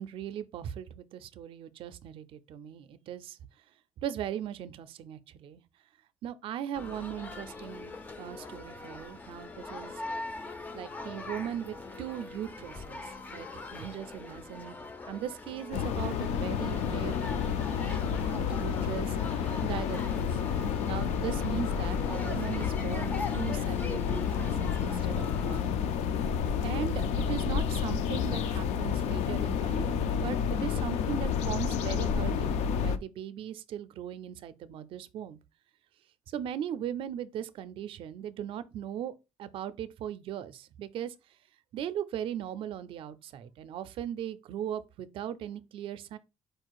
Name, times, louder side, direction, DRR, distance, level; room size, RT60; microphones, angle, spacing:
voice 1, 0.0-3.4 4.0-5.6 6.2-7.9 8.2-9.9 10.7-14.8 15.1-20.3 20.9-25.7 26.6-30.0 30.2-35.4 36.3-39.1 39.4-41.1 41.7-46.2, right 10 dB, 55° right, 0.4 m, -39 dB
sound 1, 6.7-25.7, left 3 dB, 15° left, 0.4 m, -42 dB
sound 2, 15.7-33.0, left 7 dB, 85° left, 0.5 m, -30 dB
4.6 x 2.4 x 4.5 m
cardioid pair, 175°, 11 cm